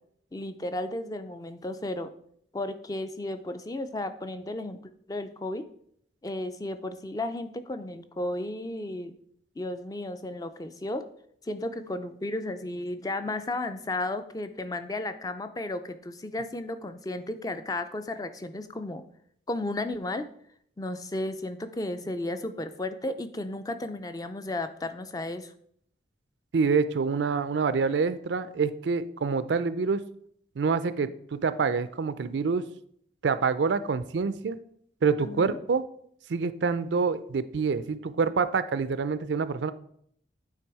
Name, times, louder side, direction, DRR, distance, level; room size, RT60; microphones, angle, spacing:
voice 1, 0.3-2.1 2.5-4.8 5.1-5.7 6.2-9.1 9.6-11.1 11.4-19.0 19.5-20.3 20.8-25.5 35.2-35.6, left 2 dB, 20° left, 9 dB, 0.4 m, -34 dB
voice 2, 26.5-30.0 30.6-32.6 33.2-34.6 35.0-35.8 36.3-39.7, right 5 dB, 80° right, 13 dB, 0.4 m, -26 dB
9.1 x 3.4 x 4.7 m, 0.66 s
head